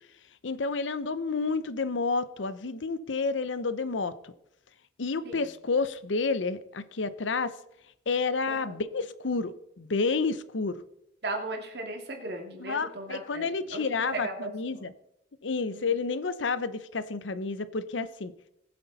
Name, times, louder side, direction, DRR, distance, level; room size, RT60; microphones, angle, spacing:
voice 1, 0.4-4.3 5.0-7.5 8.1-10.8 12.6-14.9 15.4-18.3, left 4 dB, 85° left, 0.7 m, -30 dB
voice 2, 8.5-8.8 11.2-14.9 15.7-15.9, right 2 dB, 60° right, 2.4 m, -37 dB
19.0 x 7.9 x 4.1 m
head